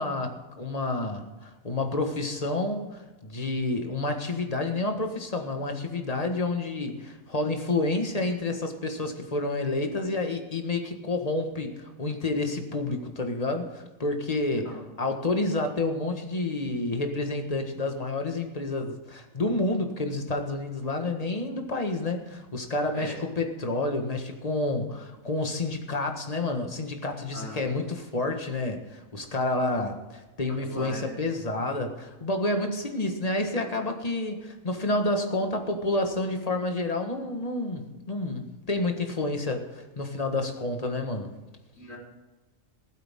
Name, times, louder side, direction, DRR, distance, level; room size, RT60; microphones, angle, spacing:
voice 1, 0.0-41.3, left 2 dB, 25° left, 5 dB, 1.6 m, -29 dB
voice 2, 27.3-27.8 30.7-31.2 41.8-42.0, left 1 dB, 65° left, -4 dB, 4.5 m, -39 dB
15.0 x 13.0 x 3.7 m, 1.2 s
omnidirectional pair, 1.5 m